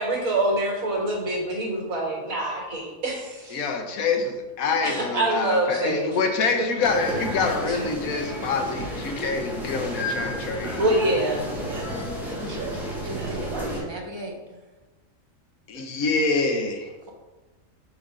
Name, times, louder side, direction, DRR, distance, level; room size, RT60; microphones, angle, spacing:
voice 1, 0.0-3.6 4.6-6.2 7.1-7.2 7.7-8.2 10.8-12.0 12.3-12.8 13.1-13.9, right 1 dB, 75° right, -1 dB, 2.1 m, -27 dB
voice 2, 3.5-10.8 15.7-16.9, left 4 dB, 90° left, 5 dB, 1.3 m, -26 dB
sound 1, 6.8-13.8, equal, ahead, 1.3 m, -32 dB
voice 3, 13.0-14.6, right 1 dB, 25° right, 1 dB, 0.8 m, -37 dB
5.3 x 4.8 x 4.9 m, 1.2 s
omnidirectional pair, 1.4 m